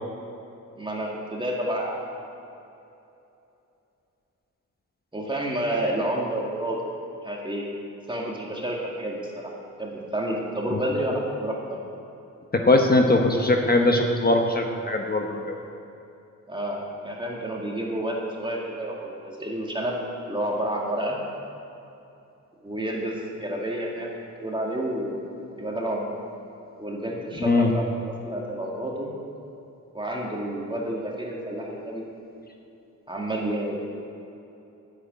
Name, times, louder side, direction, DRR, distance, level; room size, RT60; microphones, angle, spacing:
voice 1, 0.8-2.1 5.1-6.8 7.2-7.7 8.1-9.5 9.8-11.8 16.5-20.0 20.3-21.2 22.6-25.2 25.6-26.1 26.8-27.8 28.2-29.1 29.9-32.0 33.1-33.7, right 1 dB, 15° right, -3 dB, 2.1 m, -29 dB
voice 2, 12.5-15.6 27.4-27.7, left 2 dB, 30° left, 3 dB, 1.2 m, -21 dB
10.0 x 8.1 x 9.5 m, 2.8 s
cardioid pair, 85°, 32 cm